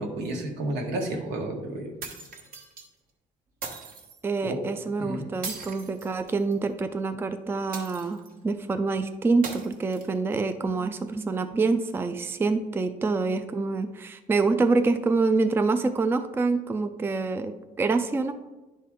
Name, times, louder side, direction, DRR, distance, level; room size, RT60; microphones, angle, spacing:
voice 1, 0.0-1.9 4.4-4.6 5.0-5.2, right 1 dB, 85° right, 1 dB, 1.4 m, -31 dB
sound 1, 2.0-2.9 3.6-4.2 5.4-6.6 7.7-8.4 9.4-10.4, right 4 dB, 60° right, 1.2 m, -39 dB
voice 2, 4.2-18.3, right 3 dB, 15° right, 9 dB, 0.4 m, -26 dB
10.5 x 4.2 x 3.6 m, 1.1 s
cardioid pair, 110°, 17 cm